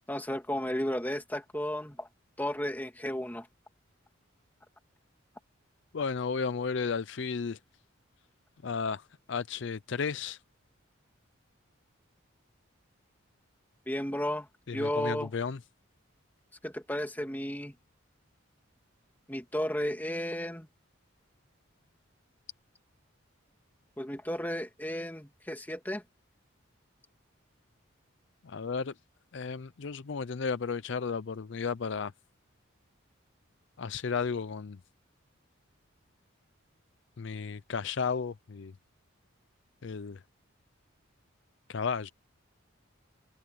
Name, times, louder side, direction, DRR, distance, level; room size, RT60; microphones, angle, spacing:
voice 1, 0.1-2.1 2.4-3.5 13.9-14.5 14.7-15.3 16.6-17.7 19.3-20.7 24.0-26.0, left 1 dB, 10° left, 2.7 m, -33 dB
voice 2, 5.9-7.6 8.6-10.4 14.7-15.6 28.4-28.9 29.3-32.1 33.8-34.8 37.2-38.7 39.8-40.2 41.7-42.1, left 5 dB, 60° left, 0.5 m, -33 dB
head